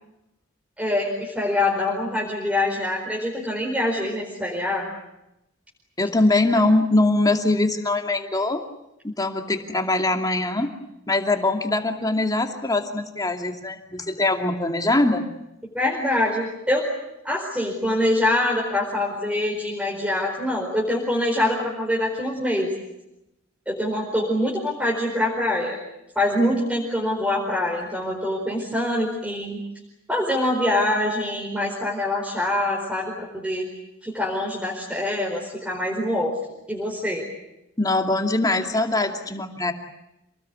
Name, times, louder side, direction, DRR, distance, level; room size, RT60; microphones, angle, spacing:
voice 1, 0.8-4.9 15.7-16.9 17.2-22.7 23.7-25.8 26.1-29.6 30.1-33.7 34.0-36.3 36.7-37.2, left 1 dB, 5° right, -2 dB, 4.7 m, -24 dB
voice 2, 6.0-8.6 9.0-10.7 11.1-15.3 37.8-39.7, left 2 dB, 20° left, 4 dB, 2.6 m, -22 dB
28.0 x 20.0 x 9.6 m, 0.89 s
head